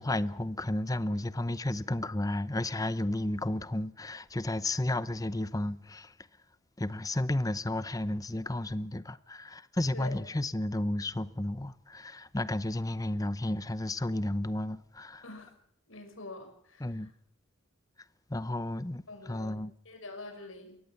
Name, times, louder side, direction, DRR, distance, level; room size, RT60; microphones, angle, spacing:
voice 1, 0.0-6.1 6.8-15.2 16.8-17.1 18.3-19.7, left 1 dB, 15° left, 0.8 m, -32 dB
voice 2, 15.9-17.1 19.1-20.8, left 2 dB, 85° left, 6.0 m, -46 dB
22.5 x 17.5 x 7.1 m
head